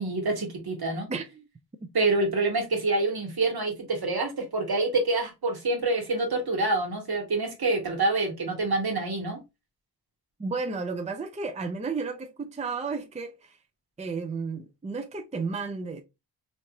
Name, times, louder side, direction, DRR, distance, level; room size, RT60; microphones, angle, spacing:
voice 1, 0.0-1.1 1.9-9.4, right 2 dB, 60° right, 1.3 m, -27 dB
voice 2, 1.1-1.5 10.4-13.6 14.0-16.0, right 4 dB, 15° right, 0.5 m, -33 dB
3.1 x 2.7 x 2.8 m
cardioid pair, 50°, 41 cm